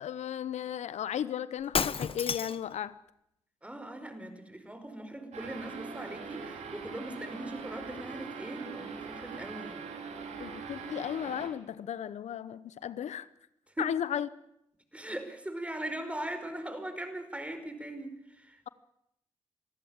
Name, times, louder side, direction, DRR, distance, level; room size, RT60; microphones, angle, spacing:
voice 1, 0.0-2.9 10.4-13.3 13.8-14.3, left 9 dB, 75° left, 0.8 m, -35 dB
Shatter, 1.6-2.7, left 6 dB, 50° left, 1.1 m, -30 dB
voice 2, 3.6-9.8 13.8-13.9 14.9-18.6, right 1 dB, 10° right, 4.9 m, -40 dB
sound 1, 5.3-11.5, right 5 dB, 75° right, 4.0 m, -42 dB
25.5 x 14.5 x 8.8 m
cardioid pair, 60°, 12 cm